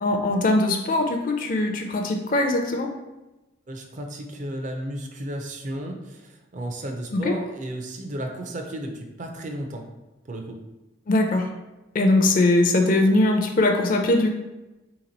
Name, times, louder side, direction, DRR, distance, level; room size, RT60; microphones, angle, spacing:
voice 1, 0.0-2.9 7.1-7.3 11.1-11.5 11.9-14.3, left 2 dB, 45° left, 4 dB, 0.4 m, -21 dB
voice 2, 3.7-9.8 10.3-10.6, right 1 dB, 40° right, 4 dB, 0.5 m, -33 dB
3.5 x 3.0 x 3.9 m, 1.0 s
head